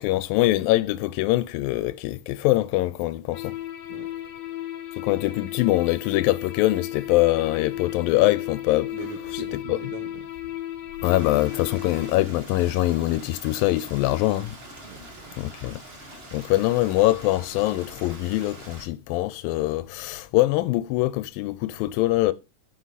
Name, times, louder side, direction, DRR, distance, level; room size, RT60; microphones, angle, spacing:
voice 1, 0.0-3.5 5.0-8.9 9.7-9.8 11.0-14.6 15.4-15.8 16.3-22.3, left 17 dB, 85° left, 2.3 m, -23 dB
sound 1, 3.3-12.1, left 14 dB, 65° left, 2.7 m, -34 dB
voice 2, 8.9-10.3 14.8-15.4, right 7 dB, 75° right, 2.7 m, -41 dB
Stream, 11.0-18.9, right 1 dB, 25° right, 1.4 m, -44 dB
9.3 x 6.2 x 4.1 m
omnidirectional pair, 4.0 m